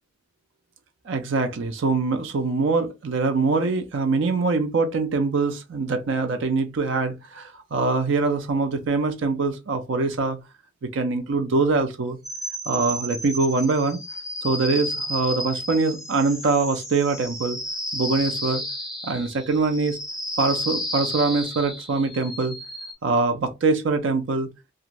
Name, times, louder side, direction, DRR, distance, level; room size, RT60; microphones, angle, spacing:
voice 1, 1.1-10.4 10.8-12.2 12.7-14.0 14.4-17.6 17.9-18.6 19.0-20.0 20.4-22.5 23.0-24.5, right 3 dB, 65° right, 0.4 m, -23 dB
sound 1, 12.2-22.9, equal, 5° right, 0.5 m, -32 dB
2.4 x 2.4 x 2.9 m
head